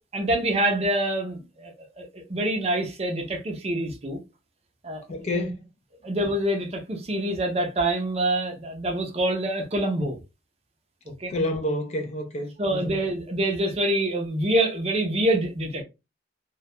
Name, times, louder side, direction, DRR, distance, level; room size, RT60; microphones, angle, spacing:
voice 1, 0.1-4.2 4.8-5.0 6.0-10.2 11.1-11.3 12.6-15.8, right 1 dB, 35° right, 0.5 m, -26 dB
voice 2, 5.1-5.7 11.3-13.0, left 1 dB, 35° left, 0.4 m, -29 dB
2.2 x 2.1 x 2.6 m
head